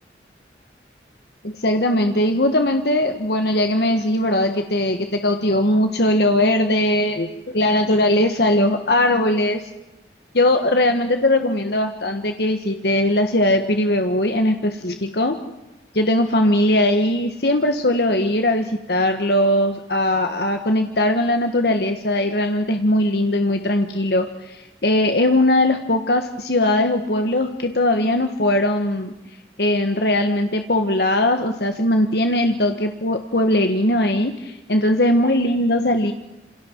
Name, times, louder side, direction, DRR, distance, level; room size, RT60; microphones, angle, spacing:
voice 1, 1.4-9.6 10.3-15.4 15.9-29.1 29.6-36.1, left 1 dB, 60° left, 6 dB, 1.6 m, -20 dB
28.0 x 27.5 x 4.7 m, 0.97 s
head